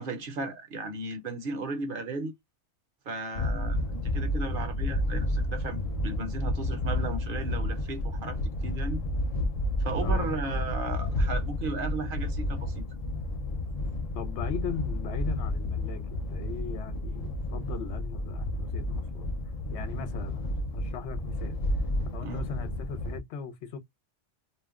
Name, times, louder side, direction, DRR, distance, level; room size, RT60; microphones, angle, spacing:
voice 1, 0.0-2.3 3.1-9.0 9.8-12.8 22.2-22.5, right 3 dB, 60° right, 0.7 m, -35 dB
sound 1, 3.3-23.2, left 1 dB, 50° left, 0.4 m, -31 dB
voice 2, 14.1-19.3 19.7-21.6 22.1-23.8, left 7 dB, 75° left, 0.9 m, -39 dB
2.4 x 2.0 x 3.4 m
omnidirectional pair, 1.2 m